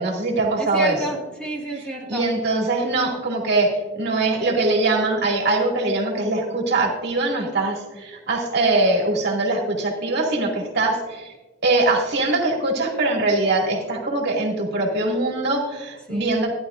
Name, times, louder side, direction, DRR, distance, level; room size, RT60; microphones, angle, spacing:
voice 1, 0.0-1.0 2.1-11.3 11.6-16.5, right 2 dB, 60° right, -1 dB, 2.3 m, -22 dB
voice 2, 0.6-2.2 16.1-16.4, right 1 dB, 5° left, -2 dB, 1.8 m, -30 dB
14.5 x 11.0 x 2.5 m, 1.2 s
head